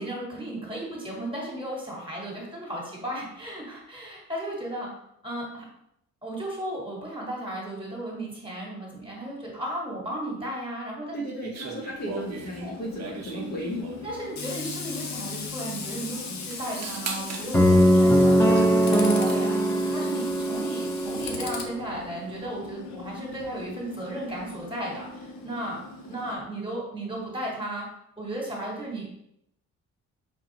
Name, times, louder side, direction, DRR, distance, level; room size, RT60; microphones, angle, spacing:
voice 1, 0.0-4.9 5.2-5.6 6.2-11.1 12.6-12.7 14.0-19.5 19.9-25.8 26.0-27.8 28.2-29.1, right 1 dB, 15° right, -3 dB, 1.5 m, -35 dB
voice 2, 11.1-13.9, equal, 35° left, -3 dB, 1.0 m, -34 dB
sound 1, 11.4-14.2 15.3-15.4 15.6-16.0 16.5-17.5 18.2-18.7 18.9-19.5, right 5 dB, 60° right, 0.7 m, -39 dB
Tools, 12.0-26.3, left 4 dB, 65° left, 0.7 m, -39 dB
sound 2, 17.5-21.7, equal, 10° left, 0.6 m, -21 dB
5.2 x 2.3 x 2.9 m, 0.77 s
cardioid pair, 90°, 30 cm